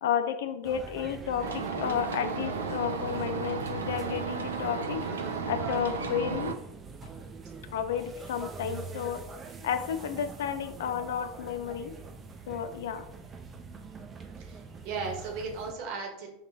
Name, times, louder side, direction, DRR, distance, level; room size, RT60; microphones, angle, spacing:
voice 1, 0.0-5.0 5.5-6.5 7.7-9.2 9.6-11.9 12.5-13.0, left 8 dB, 75° left, 9 dB, 0.4 m, -32 dB
sound 1, 0.6-15.7, right 4 dB, 30° right, 0.5 m, -44 dB
sound 2, 1.4-6.5, right 5 dB, 85° right, 0.4 m, -34 dB
voice 2, 14.4-16.3, right 4 dB, 60° right, 1 dB, 1.1 m, -36 dB
5.1 x 2.8 x 2.8 m, 0.80 s
hypercardioid pair, 90°, 0 cm